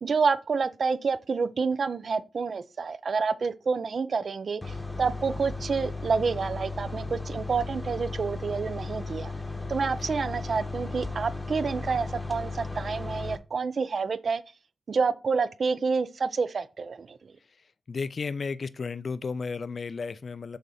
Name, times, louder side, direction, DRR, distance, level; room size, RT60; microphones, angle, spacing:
voice 1, 0.0-9.3 9.7-14.4 14.9-17.3, right 5 dB, 65° right, 0.5 m, -28 dB
sound 1, 4.6-13.4, left 3 dB, 15° left, 0.8 m, -35 dB
voice 2, 17.9-20.6, left 4 dB, 60° left, 0.4 m, -33 dB
6.6 x 3.7 x 4.2 m
cardioid pair, 75°, 0 cm